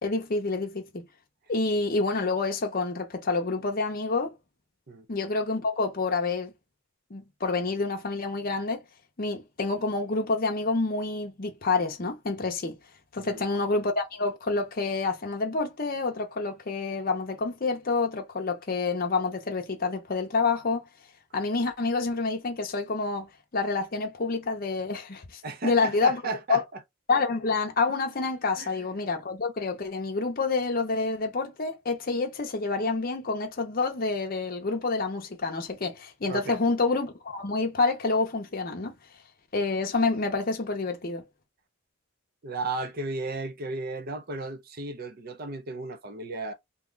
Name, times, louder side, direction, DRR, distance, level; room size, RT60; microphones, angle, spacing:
voice 1, 0.0-1.1 1.5-4.3 5.1-6.5 7.1-8.8 9.2-12.8 13.1-20.8 21.3-26.2 26.5-26.6 27.1-38.9 39.5-41.2, left 3 dB, 40° left, 0.6 m, -28 dB
voice 2, 25.4-26.8 28.6-28.9 36.3-36.6 42.4-46.5, right 3 dB, 45° right, 0.5 m, -34 dB
2.8 x 2.2 x 3.8 m
head